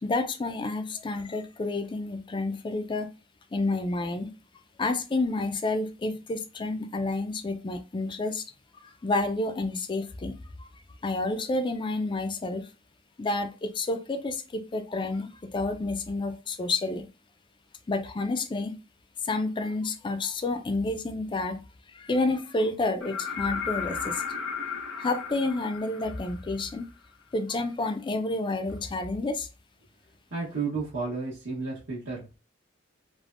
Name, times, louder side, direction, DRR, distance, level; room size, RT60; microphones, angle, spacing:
voice 1, 0.0-3.1 3.5-4.3 4.8-8.4 9.0-10.4 11.0-12.7 13.2-17.1 17.9-18.7 19.2-21.6 21.9-24.2 25.0-26.9 27.3-29.5, left 2 dB, 25° left, 8 dB, 0.4 m, -29 dB
sound 1, 23.0-26.8 28.7-28.8, left 6 dB, 75° left, 1.0 m, -34 dB
voice 2, 30.3-32.3, right 4 dB, 70° right, -9 dB, 1.1 m, -32 dB
3.4 x 2.1 x 2.5 m, 0.31 s
head